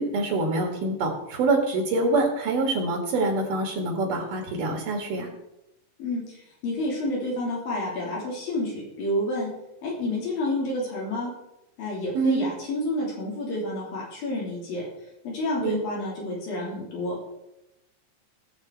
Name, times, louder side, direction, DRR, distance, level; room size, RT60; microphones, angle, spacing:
voice 1, 0.0-5.3 12.1-12.5 15.6-15.8, right 3 dB, 70° right, 1 dB, 3.4 m, -25 dB
voice 2, 6.0-9.5 9.8-11.3 11.8-14.9 15.2-17.2, left 1 dB, 80° left, -4 dB, 5.0 m, -29 dB
17.5 x 7.5 x 4.7 m, 0.90 s
omnidirectional pair, 4.0 m